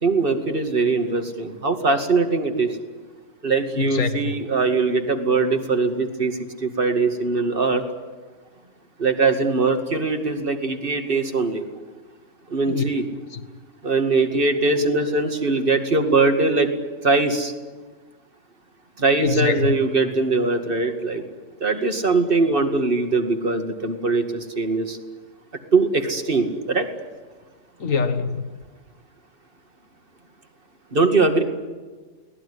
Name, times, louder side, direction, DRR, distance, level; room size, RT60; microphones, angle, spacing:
voice 1, 0.0-2.8 3.4-7.8 9.0-11.6 12.5-13.0 13.8-16.7 17.0-17.5 19.0-21.2 21.6-25.0 25.7-26.9 30.9-31.4, right 3 dB, 45° right, 6 dB, 2.4 m, -21 dB
voice 2, 3.8-4.3 12.7-12.8 19.2-19.7 27.8-28.4, left 5 dB, 80° left, 9 dB, 2.0 m, -23 dB
24.0 x 18.5 x 9.9 m, 1.4 s
omnidirectional pair, 1.4 m